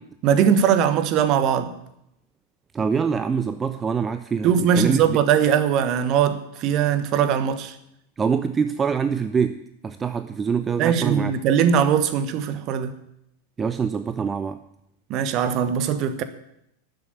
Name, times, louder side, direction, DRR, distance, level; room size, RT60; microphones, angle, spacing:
voice 1, 0.2-1.7 4.4-7.7 10.8-12.9 15.1-16.2, right 8 dB, 40° right, 1.3 m, -20 dB
voice 2, 2.7-5.2 8.2-11.3 13.6-14.6, right 6 dB, 20° right, 0.6 m, -25 dB
12.5 x 7.8 x 8.8 m
figure-of-eight pair, 90°, 0 cm